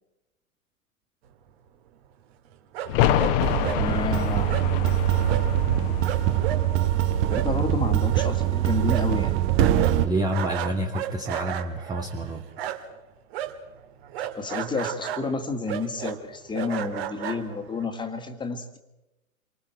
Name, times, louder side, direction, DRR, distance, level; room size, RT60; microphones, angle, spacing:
sound 1, 2.7-3.3 3.6-3.8 4.5-4.7 5.3-5.5 5.8-5.9 6.0-13.0 13.3-17.8, right 10 dB, 45° right, 2.1 m, -34 dB
sound 2, 2.9-8.4 8.7-8.8, left 10 dB, 40° left, 1.4 m, -28 dB
sound 3, 3.4-10.1, right 12 dB, 30° right, 1.2 m, -23 dB
voice 1, 3.7-4.5 7.3-9.4 14.3-18.8, left 3 dB, 10° left, 7 dB, 1.9 m, -30 dB
voice 2, 10.0-12.4, right 1 dB, 10° right, 4 dB, 1.1 m, -28 dB
28.5 x 24.5 x 4.6 m, 0.99 s
figure-of-eight pair, 105°, 43 cm